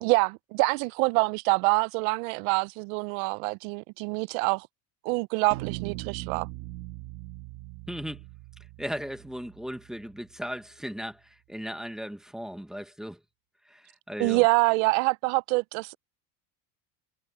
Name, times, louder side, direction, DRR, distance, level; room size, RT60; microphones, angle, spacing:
voice 1, 0.0-4.7 5.0-6.5 14.2-16.0, right 27 dB, 70° right, 0.5 m, -25 dB
sound 1, 5.5-10.1, right 18 dB, 55° right, 1.9 m, -40 dB
voice 2, 7.9-8.2 8.8-13.2 13.6-14.4, equal, ahead, 0.9 m, -37 dB
cardioid pair, 175°, 43 cm